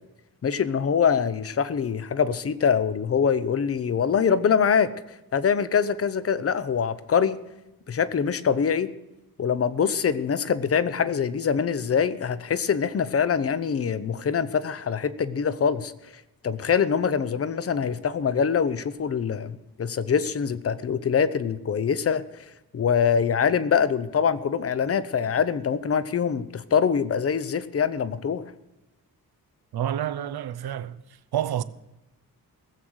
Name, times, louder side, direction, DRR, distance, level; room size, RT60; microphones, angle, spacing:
voice 1, 0.4-4.9 5.3-7.4 7.9-8.9 9.4-15.9 16.4-28.4, left 7 dB, 40° left, 0.6 m, -24 dB
voice 2, 29.7-31.0 31.3-31.6, right 10 dB, 85° right, 0.7 m, -28 dB
18.5 x 7.9 x 6.3 m
wide cardioid pair, 180°, 37 cm